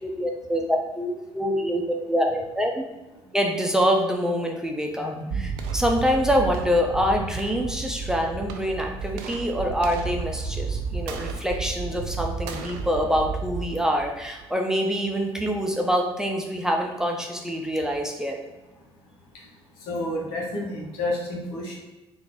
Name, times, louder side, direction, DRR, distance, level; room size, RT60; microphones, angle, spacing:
voice 1, 0.0-2.8 3.3-18.4, equal, 5° right, 0 dB, 0.7 m, -25 dB
voice 2, 5.0-5.4 19.9-21.8, left 1 dB, 75° left, -3 dB, 1.1 m, -30 dB
sound 1, 5.3-14.4, right 5 dB, 70° right, 0.4 m, -32 dB
3.8 x 2.6 x 3.7 m, 1.1 s
hypercardioid pair, 55°, 14 cm